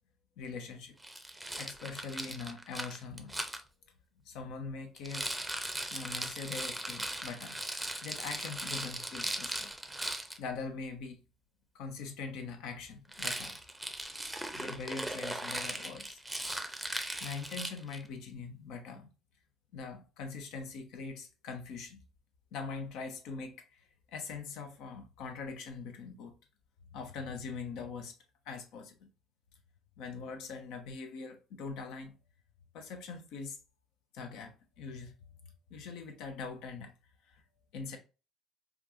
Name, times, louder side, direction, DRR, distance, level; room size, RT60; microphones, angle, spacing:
voice 1, 0.4-1.0 1.6-3.4 4.2-5.3 5.9-7.6 8.0-9.7 10.0-10.1 10.4-11.2 11.7-13.6 14.5-16.2 17.2-19.1 19.7-22.0 22.5-26.3 26.9-28.2 28.4-29.1 30.0-32.1 32.7-33.6 34.1-35.1 35.4-36.9 37.2-37.4 37.7-38.0, left 4 dB, 65° left, 0.7 m, -42 dB
Rattle, 1.0-3.6 5.0-10.4 13.1-18.1, right 1 dB, 5° right, 0.6 m, -38 dB
4.7 x 2.5 x 2.6 m
figure-of-eight pair, 55°, 0 cm